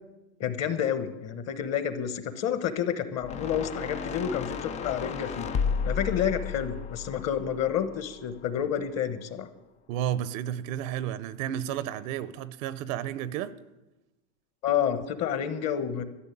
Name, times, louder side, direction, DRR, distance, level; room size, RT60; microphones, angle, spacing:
voice 1, 0.4-5.5 5.8-9.5 14.6-16.0, left 9 dB, 35° left, 1.2 m, -29 dB
sound 1, 3.2-8.5, left 6 dB, 15° left, 0.3 m, -33 dB
voice 2, 9.9-13.5, right 11 dB, 60° right, 0.9 m, -32 dB
13.0 x 6.7 x 10.0 m
supercardioid pair, 120°, 45 cm